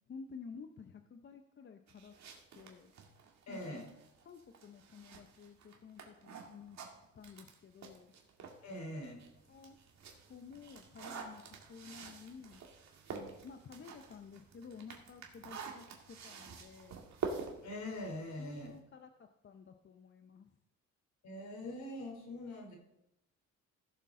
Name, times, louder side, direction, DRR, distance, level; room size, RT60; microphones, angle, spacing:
voice 1, 0.1-2.2 2.5-2.9 3.5-3.8 4.2-6.8 7.1-8.1 9.5-9.8 10.2-12.6 13.1-17.0 18.4-20.5, left 5 dB, 40° left, 6 dB, 0.7 m, -52 dB
sound 1, 1.9-8.7 9.1-18.8, right 5 dB, 65° right, 1.9 m, -48 dB
voice 2, 3.5-3.9 8.6-9.2 17.6-18.8 21.2-22.8, left 1 dB, 65° left, 1 dB, 3.3 m, -43 dB
15.5 x 7.1 x 3.7 m, 0.87 s
cardioid pair, 90°, 30 cm